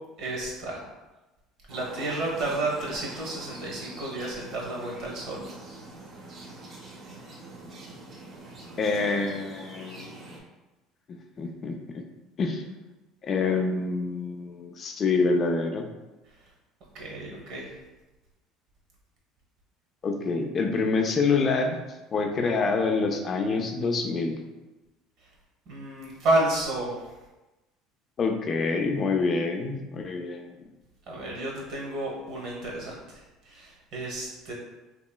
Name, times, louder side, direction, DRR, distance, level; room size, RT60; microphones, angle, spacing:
voice 1, 0.2-0.8 1.7-5.4 16.9-17.7 25.7-26.9 31.1-34.5, right 2 dB, 65° right, -2 dB, 1.1 m, -31 dB
sound 1, 1.7-10.4, right 2 dB, 40° right, 0.7 m, -44 dB
voice 2, 8.8-10.1 11.1-12.0 12.4-12.6 13.2-15.9 20.0-21.8 22.1-24.4 28.2-30.6, left 4 dB, 40° left, 4 dB, 0.4 m, -26 dB
3.0 x 2.9 x 2.2 m, 1.1 s
supercardioid pair, 110°, 0 cm